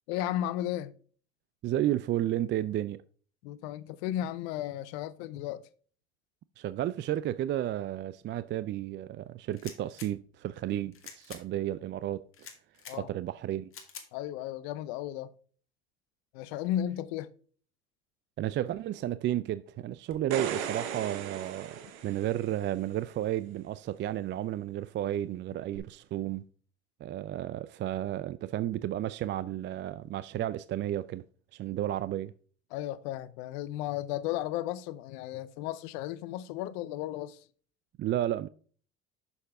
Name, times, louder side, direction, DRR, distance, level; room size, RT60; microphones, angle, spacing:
voice 1, 0.1-0.9 3.4-5.6 12.9-13.1 14.1-15.3 16.3-17.3 32.7-37.4, left 12 dB, 70° left, 0.7 m, -34 dB
voice 2, 1.6-3.0 6.6-12.2 12.9-13.7 18.4-26.5 27.0-31.2 31.5-32.3 38.0-38.5, right 12 dB, 35° right, 0.4 m, -32 dB
Pump Action Shotgun, 9.5-10.1 10.9-11.4 12.3-13.0 13.7-14.1, left 6 dB, 40° left, 1.8 m, -46 dB
sound 1, 20.1-22.7 25.7-25.8, right 8 dB, 75° right, 1.1 m, -37 dB
7.0 x 6.5 x 3.4 m
hypercardioid pair, 70°, 33 cm